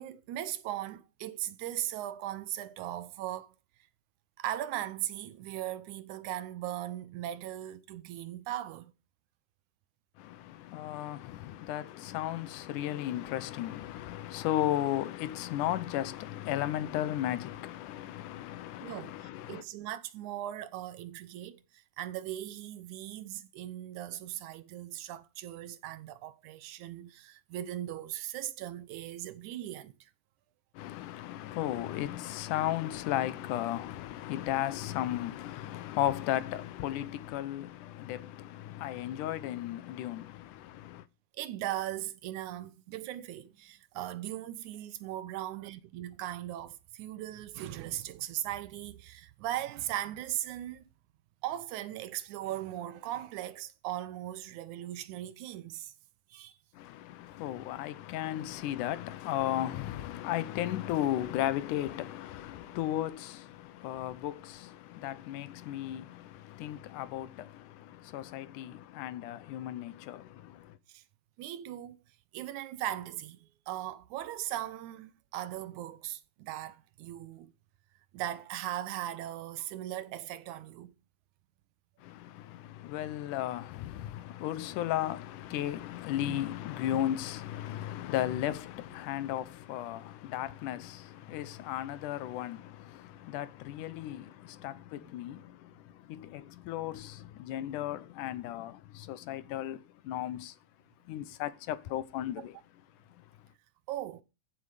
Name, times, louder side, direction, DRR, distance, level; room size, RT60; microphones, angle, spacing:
voice 1, 0.0-3.5 4.4-8.9 18.8-30.1 41.3-50.8 51.4-55.9 56.3-56.6 62.7-62.8 70.9-71.0 71.4-72.0 72.3-77.5 78.1-80.9 85.5-85.7 86.3-86.4 95.0-95.1 102.4-102.5 103.9-104.2, right 13 dB, 80° right, 2.2 m, -38 dB
voice 2, 10.2-19.6 30.7-41.0 56.7-70.8 82.0-100.6 101.1-102.5, left 13 dB, 90° left, 2.4 m, -35 dB
14.5 x 7.6 x 5.0 m
omnidirectional pair, 3.5 m